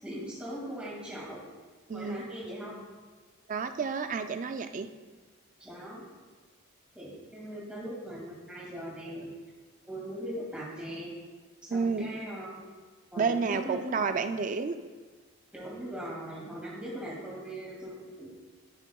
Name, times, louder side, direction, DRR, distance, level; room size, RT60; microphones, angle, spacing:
voice 1, 0.0-1.5 1.9-2.8 5.6-6.0 6.9-9.3 9.9-11.1 11.6-12.6 13.1-13.8 15.5-18.5, right 1 dB, 5° right, -5 dB, 2.1 m, -40 dB
voice 2, 1.9-2.2 3.5-4.9 11.7-12.1 13.2-14.8, right 5 dB, 35° right, 9 dB, 0.3 m, -30 dB
11.5 x 6.2 x 2.3 m, 1.4 s
head